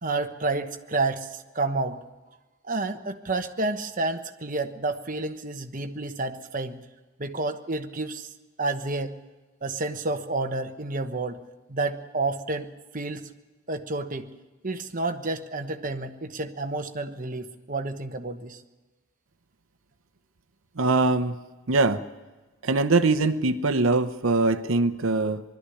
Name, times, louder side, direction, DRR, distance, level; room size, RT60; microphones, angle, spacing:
voice 1, 0.0-2.0 2.6-6.8 7.2-8.3 8.6-9.1 9.6-11.4 11.7-13.3 13.7-14.3 14.6-18.6, right 3 dB, 40° right, 7 dB, 1.1 m, -30 dB
voice 2, 20.8-21.4 21.7-22.0 22.6-25.4, right 3 dB, 70° right, 10 dB, 0.9 m, -22 dB
21.0 x 13.0 x 10.0 m, 1.2 s
head